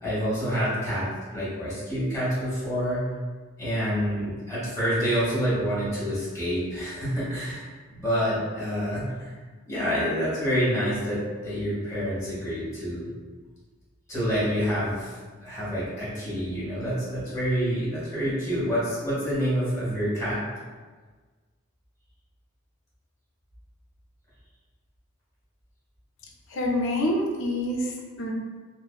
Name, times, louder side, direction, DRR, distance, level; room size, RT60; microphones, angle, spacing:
voice 1, 0.0-3.0 3.6-9.3 9.7-13.1 14.1-20.4, equal, 15° left, -9 dB, 1.1 m, -27 dB
voice 2, 26.5-28.3, left 1 dB, 60° left, -1 dB, 0.4 m, -27 dB
2.6 x 2.4 x 2.2 m, 1.4 s
head